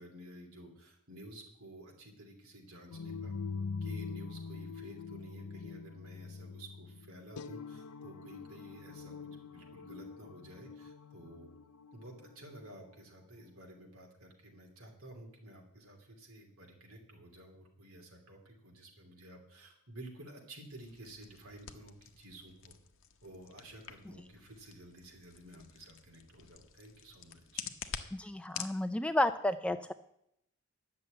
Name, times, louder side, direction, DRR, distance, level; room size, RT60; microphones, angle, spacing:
voice 1, 0.0-3.3 3.8-11.5 11.9-22.7 23.2-27.7, right 1 dB, 65° right, 1 dB, 2.9 m, -52 dB
sound 1, 2.9-12.8, left 4 dB, 80° left, 0.6 m, -44 dB
sound 2, 20.8-28.8, left 8 dB, 60° left, 0.9 m, -48 dB
voice 2, 28.1-29.9, left 1 dB, 5° left, 10 dB, 0.3 m, -31 dB
10.5 x 6.8 x 8.7 m, 0.77 s
head